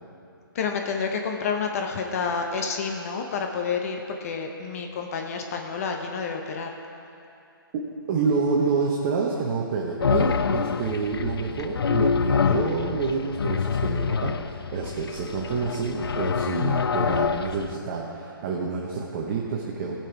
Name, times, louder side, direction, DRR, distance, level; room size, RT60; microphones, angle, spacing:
voice 1, 0.5-6.7, left 5 dB, 40° left, 3 dB, 0.8 m, -29 dB
voice 2, 8.1-20.0, right 4 dB, 30° right, -2 dB, 1.0 m, -28 dB
sound 1, 10.0-17.8, left 6 dB, 80° left, 0.4 m, -26 dB
16.0 x 5.8 x 4.6 m, 2.6 s
hypercardioid pair, 145°, 12 cm